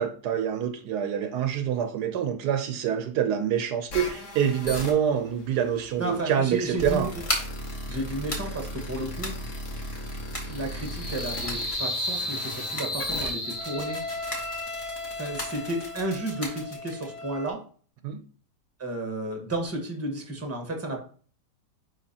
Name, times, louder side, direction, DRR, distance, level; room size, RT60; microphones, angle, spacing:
voice 1, 0.0-7.1 18.0-18.2, right 8 dB, 75° right, 8 dB, 1.2 m, -26 dB
sound 1, 3.9-17.5, left 1 dB, 65° left, 2.2 m, -37 dB
sound 2, 5.9-17.3, equal, 20° left, 1.2 m, -39 dB
voice 2, 6.0-7.1 7.9-9.3 10.5-14.0 15.1-17.6 18.8-21.0, right 1 dB, 10° right, 3 dB, 1.1 m, -32 dB
sound 3, 8.5-14.4, left 1 dB, 50° left, 2.2 m, -34 dB
9.9 x 3.6 x 2.8 m, 0.42 s
omnidirectional pair, 1.8 m